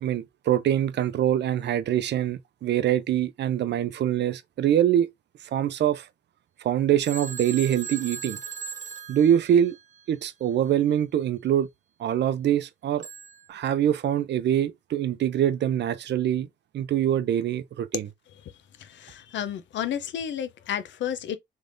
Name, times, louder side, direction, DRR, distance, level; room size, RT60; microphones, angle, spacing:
voice 1, 0.0-5.1 5.5-6.1 6.6-8.4 9.1-9.8 10.1-11.7 12.0-13.1 13.5-16.5 16.7-18.1, right 10 dB, 60° right, 0.6 m, -24 dB
Telephone, 7.0-10.0 13.0-13.5, right 7 dB, 40° right, 1.0 m, -38 dB
voice 2, 18.8-21.4, left 9 dB, 65° left, 0.7 m, -32 dB
3.4 x 3.3 x 2.6 m
cardioid pair, 90°, 20 cm